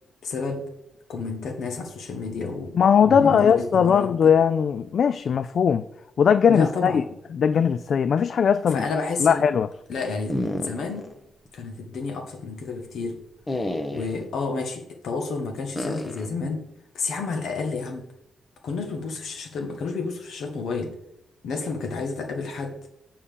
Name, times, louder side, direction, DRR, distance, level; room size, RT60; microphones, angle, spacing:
voice 1, 0.2-0.6 1.1-2.8 3.1-4.3 6.5-7.0 8.7-9.4 9.9-11.1 11.5-13.2 13.9-16.7 16.9-18.1 18.6-21.0 21.4-22.8, left 4 dB, 80° left, 1.5 m, -30 dB
voice 2, 2.7-5.9 6.2-7.0 7.3-8.9 9.2-9.7, left 7 dB, 65° left, 0.3 m, -19 dB
sound 1, 10.3-11.1 11.5-11.6 13.5-14.3 15.8-16.3, left 1 dB, 25° left, 1.1 m, -30 dB
7.2 x 5.5 x 6.8 m
cardioid pair, 85°, 0 cm